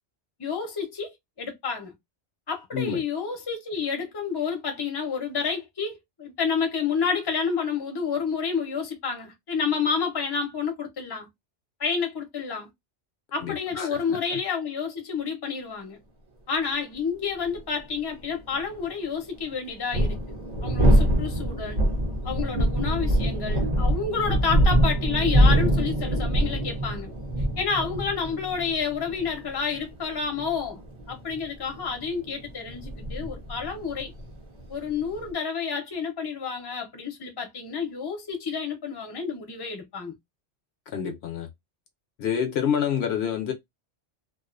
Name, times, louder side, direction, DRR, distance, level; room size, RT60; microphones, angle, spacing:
voice 1, 0.4-1.9 2.5-11.3 11.8-12.7 13.3-16.0 16.5-21.8 22.2-27.1 27.6-30.8 31.1-34.1 34.7-40.1, left 5 dB, 25° left, 0.6 m, -29 dB
voice 2, 2.7-3.0 13.4-14.4 40.9-41.5 42.2-43.5, left 8 dB, 70° left, 0.8 m, -28 dB
sound 1, 17.5-17.6 19.7-35.3, equal, 45° right, 0.7 m, -24 dB
2.4 x 2.3 x 2.4 m
omnidirectional pair, 1.2 m